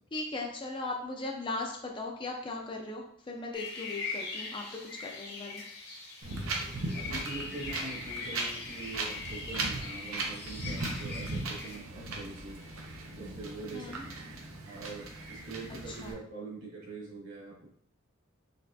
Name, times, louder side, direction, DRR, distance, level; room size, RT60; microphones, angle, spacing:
voice 1, 0.1-5.6 13.7-14.0 15.9-16.2, left 2 dB, 25° left, 1 dB, 0.4 m, -38 dB
sound 1, 3.5-11.8, left 3 dB, 50° left, 0.9 m, -41 dB
Wind, 6.2-16.1, right 2 dB, 90° right, 0.7 m, -38 dB
voice 2, 6.9-12.6 13.1-14.0 14.3-17.7, right 3 dB, 60° right, -4 dB, 1.5 m, -44 dB
4.1 x 3.1 x 2.7 m, 0.64 s
head